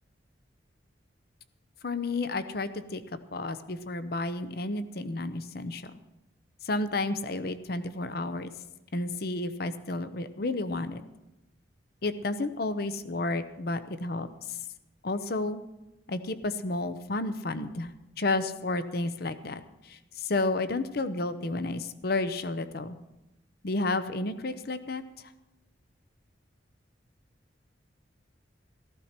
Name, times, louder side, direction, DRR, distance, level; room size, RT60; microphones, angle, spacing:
voice 1, 1.8-3.0 3.3-5.9 6.6-8.5 8.9-11.0 12.0-14.6 15.0-15.6 16.1-17.9 18.2-19.6 19.9-23.0 23.6-25.0, left 2 dB, 55° left, 11 dB, 0.8 m, -31 dB
15.0 x 14.0 x 4.4 m, 0.95 s
head